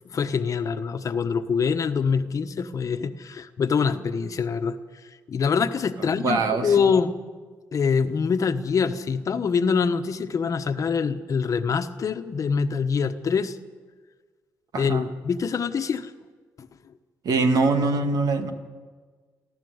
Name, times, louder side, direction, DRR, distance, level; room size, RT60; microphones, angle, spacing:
voice 1, 0.0-4.8 5.3-7.2 7.7-13.6 14.7-16.1 16.6-16.7, left 6 dB, 55° left, 9 dB, 1.2 m, -24 dB
voice 2, 6.0-6.9 14.7-15.0 17.2-18.5, right 3 dB, 70° right, 6 dB, 2.1 m, -23 dB
29.5 x 12.0 x 8.0 m, 1.5 s
cardioid pair, 70°, 7 cm